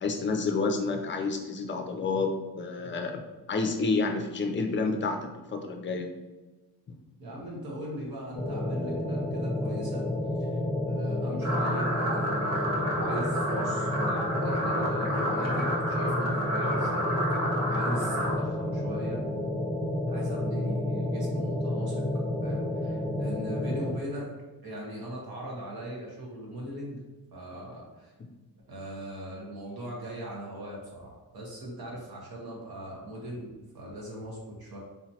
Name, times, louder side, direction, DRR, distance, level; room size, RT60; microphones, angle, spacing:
voice 1, 0.0-3.2 3.5-6.1, left 3 dB, 30° left, 4 dB, 0.5 m, -29 dB
voice 2, 7.2-10.1 10.4-10.6 10.9-17.4 17.7-19.3 20.1-22.0 22.4-24.3 24.6-27.0 27.3-28.1 28.7-34.8, right 1 dB, 65° right, -3 dB, 1.4 m, -39 dB
sound 1, 8.3-23.9, left 1 dB, 5° left, 0.8 m, -30 dB
sound 2, 11.4-18.3, equal, 40° right, 1.1 m, -30 dB
4.1 x 2.9 x 2.8 m, 1.2 s
wide cardioid pair, 140°, 38 cm